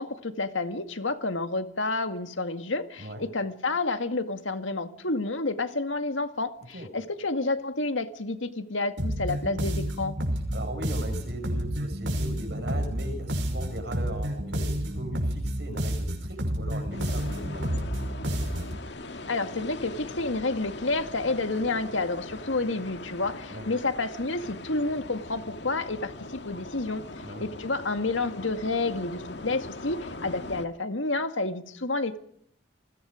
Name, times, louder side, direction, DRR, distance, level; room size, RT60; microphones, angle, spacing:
voice 1, 0.0-10.2 19.3-27.0 27.4-32.2, left 3 dB, 85° left, 8 dB, 2.0 m, -30 dB
sound 1, 9.0-18.8, equal, 80° right, 5.9 m, -30 dB
voice 2, 10.5-17.8 23.5-23.7 27.2-27.4, right 1 dB, 60° right, 5 dB, 6.0 m, -38 dB
sound 2, 16.9-30.7, left 2 dB, 65° left, 1.9 m, -41 dB
29.5 x 21.0 x 5.1 m, 0.66 s
head